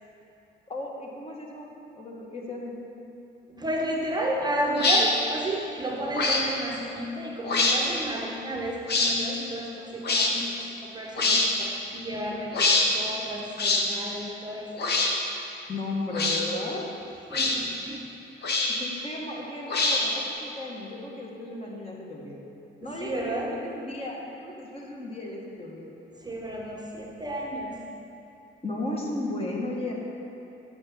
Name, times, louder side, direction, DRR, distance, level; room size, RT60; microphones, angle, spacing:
voice 1, 0.7-2.7 4.2-4.3 15.7-16.9 18.8-22.4 22.8-25.9 28.6-29.9, left 2 dB, 30° left, -2 dB, 1.2 m, -35 dB
voice 2, 3.5-14.9 17.3-18.1 22.8-23.6 26.2-27.8, right 1 dB, 20° right, -2 dB, 0.7 m, -32 dB
sound 1, 4.8-5.0 6.1-6.4 7.4-7.8 8.9-9.1 10.0-10.3 11.2-11.5 12.5-12.9 13.6-13.8 14.8-15.1 16.1-16.4 17.3-17.6 18.4-18.9 19.7-20.2, left 3 dB, 55° left, 0.9 m, -23 dB
7.5 x 6.1 x 3.6 m, 2.8 s
cardioid pair, 90°, 20 cm